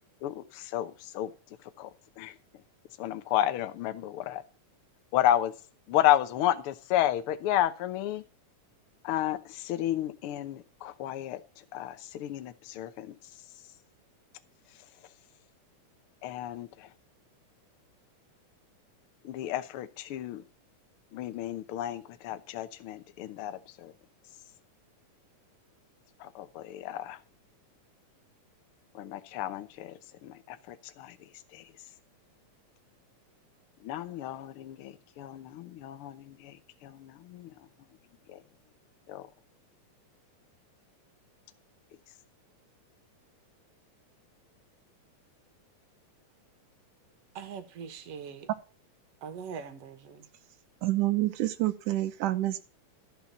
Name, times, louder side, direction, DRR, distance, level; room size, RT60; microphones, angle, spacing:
voice 1, 0.2-1.3 1.6-2.4 3.0-4.4 5.1-5.5 5.9-8.2 9.0-13.2 16.2-16.9 19.2-20.4 21.1-23.9 26.2-27.2 28.9-31.7 33.8-37.6 38.3-38.4 39.1-39.3, left 12 dB, 70° left, 1.3 m, -32 dB
voice 2, 47.3-48.5 49.2-50.3, right 6 dB, 55° right, 2.4 m, -42 dB
voice 3, 50.8-52.7, right 16 dB, 85° right, 2.5 m, -28 dB
14.0 x 5.6 x 7.1 m
omnidirectional pair, 3.6 m